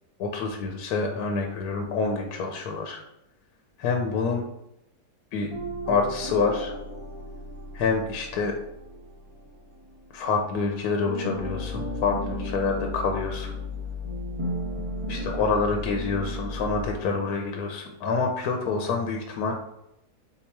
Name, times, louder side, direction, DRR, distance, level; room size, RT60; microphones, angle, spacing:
voice 1, 0.2-3.0 3.8-4.4 5.3-5.5 5.9-6.7 7.7-8.6 10.1-13.6 15.1-19.6, left 4 dB, 75° left, 3 dB, 1.0 m, -27 dB
sound 1, 5.5-10.7 11.0-17.3, left 1 dB, 40° right, 0.4 m, -35 dB
4.0 x 2.9 x 4.5 m, 0.85 s
omnidirectional pair, 1.8 m